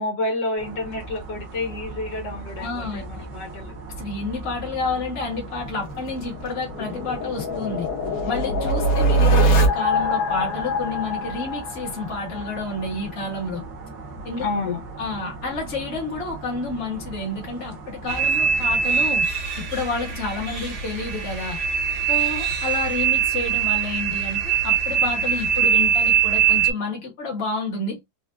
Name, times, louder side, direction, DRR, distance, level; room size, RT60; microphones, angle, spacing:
voice 1, 0.0-3.8 14.4-14.8, left 2 dB, 75° left, 1.8 m, -29 dB
sound 1, 0.6-19.1, right 3 dB, 80° right, 1.7 m, -39 dB
voice 2, 2.6-3.3 3.9-7.9 8.2-13.6 14.2-14.5 15.0-19.3 19.6-21.6 22.1-28.0, left 3 dB, 40° left, 1.4 m, -30 dB
sound 2, 5.7-12.5, right 1 dB, 55° left, 1.3 m, -23 dB
sound 3, 18.1-26.7, right 7 dB, 50° right, 1.1 m, -22 dB
4.7 x 2.1 x 2.5 m
omnidirectional pair, 1.9 m